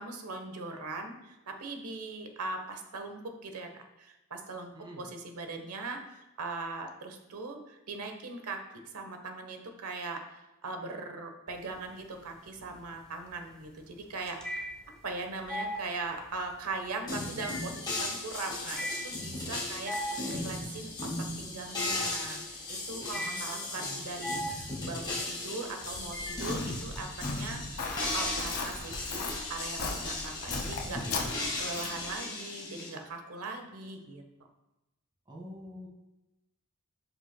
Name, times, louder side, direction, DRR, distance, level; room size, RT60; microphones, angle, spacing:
voice 1, 0.0-14.7 15.0-20.9 21.4-29.2 29.5-34.2, right 3 dB, 85° right, 5 dB, 1.0 m, -40 dB
voice 2, 4.7-5.0 23.1-24.3 35.2-35.9, equal, 20° right, -2 dB, 1.6 m, -47 dB
sound 1, 11.5-12.1 12.5-27.0, equal, 5° left, 0.6 m, -40 dB
sound 2, 17.1-32.9, left 2 dB, 20° left, 1.7 m, -36 dB
Walk footsteps, 25.8-32.1, left 3 dB, 70° left, 1.2 m, -38 dB
11.5 x 5.6 x 2.2 m, 0.98 s
head